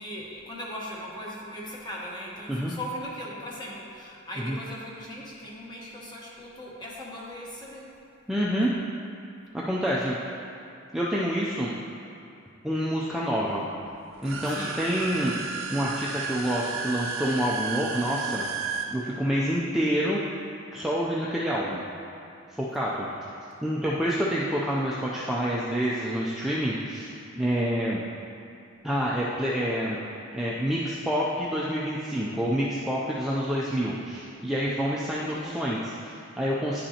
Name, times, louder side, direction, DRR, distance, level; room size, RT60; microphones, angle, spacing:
voice 1, 0.0-7.9 14.4-14.8 35.2-35.6, equal, 20° left, -4 dB, 1.1 m, -39 dB
voice 2, 8.3-8.7 9.5-10.2 10.9-11.7 12.6-13.7 14.2-15.3 15.7-18.4 18.9-20.2 20.7-21.8 22.6-23.1 23.6-27.1 27.4-28.0 28.8-30.0 30.3-36.8, equal, ahead, -6 dB, 0.4 m, -27 dB
sound 1, 14.1-18.9, right 5 dB, 80° right, 0.6 m, -33 dB
9.7 x 5.3 x 2.9 m, 2.7 s
head